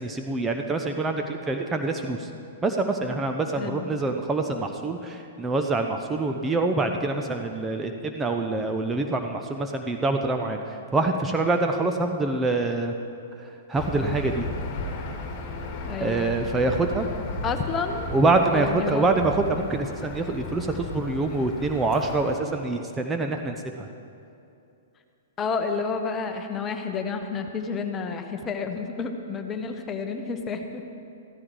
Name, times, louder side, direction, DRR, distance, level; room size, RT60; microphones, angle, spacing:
voice 1, 0.0-2.3 2.6-12.9 13.7-14.5 16.0-17.1 18.1-23.9, right 3 dB, 15° right, 4 dB, 0.8 m, -25 dB
voice 2, 3.5-4.0 15.8-16.3 17.4-18.1 18.5-19.2 25.4-30.8, left 5 dB, 20° left, 6 dB, 1.1 m, -30 dB
Aircraft / Engine, 13.8-22.3, left 3 dB, 40° left, 2.0 m, -35 dB
14.5 x 13.5 x 4.7 m, 2.6 s
figure-of-eight pair, 110°, 0 cm